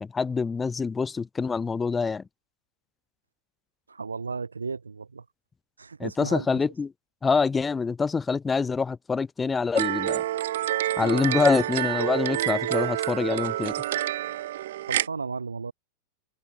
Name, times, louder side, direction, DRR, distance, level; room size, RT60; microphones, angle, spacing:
voice 1, 0.0-2.2 6.0-6.9 7.2-10.2 11.0-13.7, left 5 dB, 15° left, 2.3 m, -25 dB
voice 2, 3.9-5.2 5.8-6.6 14.9-15.7, right 4 dB, 75° right, 3.9 m, -34 dB
sound 1, 9.7-15.1, right 13 dB, 55° right, 2.3 m, -28 dB
figure-of-eight pair, 90°, 0 cm